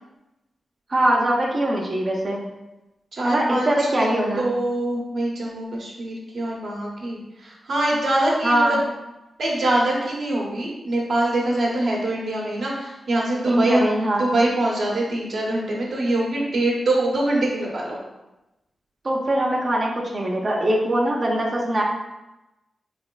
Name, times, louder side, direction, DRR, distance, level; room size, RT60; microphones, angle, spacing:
voice 1, 0.9-2.5 3.2-4.5 8.4-8.8 13.5-14.3 19.0-21.8, right 1 dB, 50° right, -3 dB, 0.6 m, -22 dB
voice 2, 3.1-4.1 4.4-8.8 9.4-13.8 14.2-18.0, right 1 dB, 70° right, -4 dB, 1.0 m, -24 dB
3.7 x 3.3 x 2.3 m, 0.99 s
supercardioid pair, 40°, 0 cm